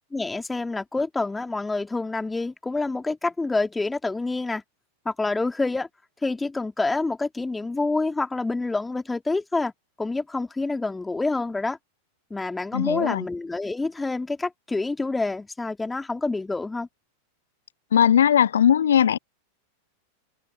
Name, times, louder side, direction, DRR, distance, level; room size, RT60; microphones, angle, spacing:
voice 1, 0.1-4.6 5.0-5.9 6.2-9.7 10.0-11.8 12.3-16.9, left 3 dB, 10° left, 3.1 m, -27 dB
voice 2, 12.7-13.2 17.9-19.2, left 9 dB, 65° left, 0.5 m, -19 dB
figure-of-eight pair, 90°, 0 cm